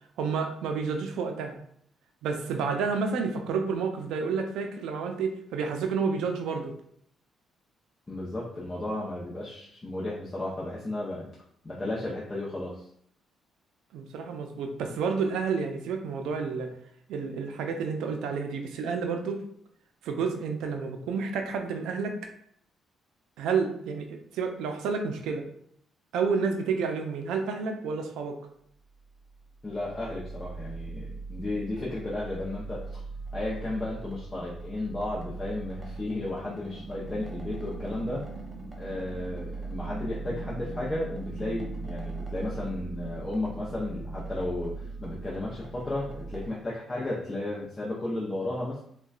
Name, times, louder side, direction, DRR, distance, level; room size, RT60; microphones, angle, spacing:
voice 1, 0.2-1.6 2.2-6.7 13.9-16.7 17.1-19.4 20.0-22.2 23.4-25.5 26.1-28.4, right 5 dB, 90° right, 4 dB, 0.4 m, -30 dB
voice 2, 8.1-11.3 11.6-12.8 29.6-33.0 33.3-38.3 38.8-48.8, left 2 dB, 20° left, -6 dB, 0.6 m, -34 dB
sound 1, 29.1-46.5, right 3 dB, 15° right, 0.7 m, -39 dB
3.7 x 2.2 x 2.3 m, 0.68 s
cardioid pair, 105°, 0 cm